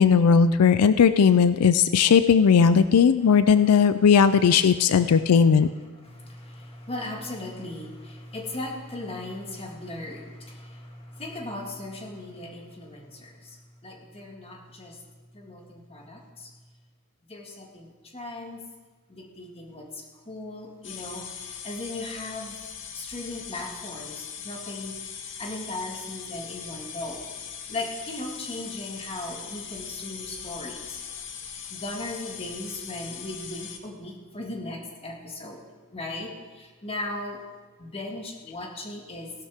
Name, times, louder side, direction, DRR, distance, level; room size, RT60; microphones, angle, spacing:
voice 1, 0.0-5.7, left 6 dB, 85° left, 13 dB, 0.4 m, -18 dB
voice 2, 4.9-5.3 6.0-15.0 15.3-16.5 17.3-18.6 19.1-22.7 22.9-25.0 25.4-27.3 27.7-31.0 31.5-35.6 35.9-37.4 37.8-39.3, left 2 dB, 25° left, 1 dB, 1.8 m, -37 dB
sound 1, 20.8-33.8, left 7 dB, 55° left, 1.1 m, -40 dB
16.5 x 12.0 x 3.6 m, 1.3 s
head